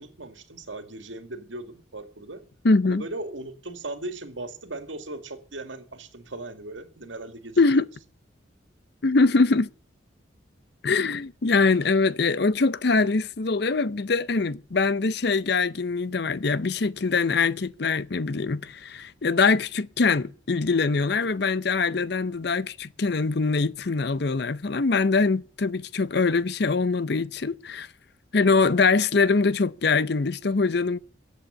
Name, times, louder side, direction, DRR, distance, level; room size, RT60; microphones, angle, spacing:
voice 1, 0.0-2.4 2.8-7.8, right 2 dB, 85° right, 2.2 m, -38 dB
voice 2, 2.6-3.0 7.6-7.9 9.0-9.7 10.8-27.9 28.3-31.0, left 4 dB, 55° left, 0.6 m, -23 dB
14.5 x 8.3 x 9.9 m
head